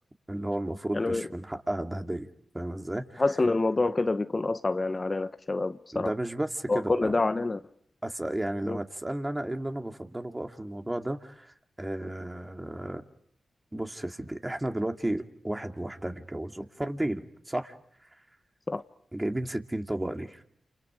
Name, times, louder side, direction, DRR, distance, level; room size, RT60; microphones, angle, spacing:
voice 1, 0.3-2.3 2.5-3.2 5.9-7.1 8.0-13.0 13.7-17.7 19.1-20.4, right 1 dB, 20° right, 2.7 m, -33 dB
voice 2, 3.2-6.1 6.7-7.6 8.7-8.8 18.7-18.8, left 3 dB, 40° left, 1.0 m, -27 dB
29.5 x 28.5 x 5.1 m
supercardioid pair, 40°, 0 cm